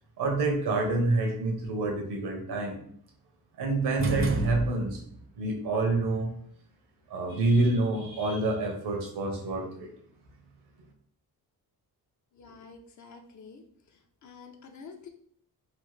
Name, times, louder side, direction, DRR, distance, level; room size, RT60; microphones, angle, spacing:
voice 1, 0.2-2.8 3.6-5.0 5.4-6.4 7.1-9.9, right 2 dB, 90° right, 2 dB, 0.9 m, -27 dB
sound 1, 4.0-5.2, right 2 dB, 35° right, 0.4 m, -30 dB
voice 2, 12.3-13.6 14.2-15.1, left 5 dB, 50° left, 4 dB, 0.5 m, -48 dB
3.1 x 2.1 x 3.1 m, 0.64 s
cardioid pair, 95°, 38 cm